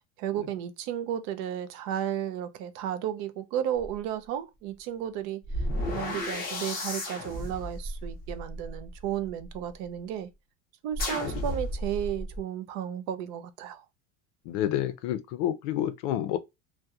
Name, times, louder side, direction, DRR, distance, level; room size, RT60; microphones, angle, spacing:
voice 1, 0.2-5.4 5.9-10.3 10.8-13.8, right 10 dB, 60° right, 0.5 m, -33 dB
sound 1, 3.8-3.9 5.4-9.5 10.9-12.4, left 1 dB, 25° left, 0.6 m, -33 dB
voice 2, 14.5-16.4, left 12 dB, 65° left, 0.5 m, -29 dB
2.7 x 2.1 x 2.3 m
cardioid pair, 170°, 37 cm